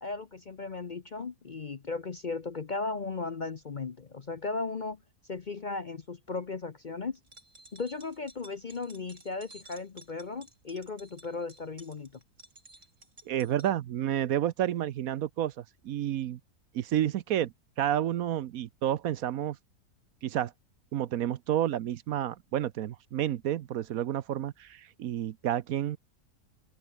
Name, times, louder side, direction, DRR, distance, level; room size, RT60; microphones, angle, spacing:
voice 1, 0.0-5.0 5.3-7.2 7.7-12.1, left 4 dB, 40° left, 0.7 m, -36 dB
sound 1, 7.2-13.7, right 2 dB, 50° right, 6.5 m, -54 dB
voice 2, 13.3-16.4 16.7-19.6 20.2-20.5 20.9-26.0, right 11 dB, 70° right, 1.1 m, -30 dB
omnidirectional pair, 1.7 m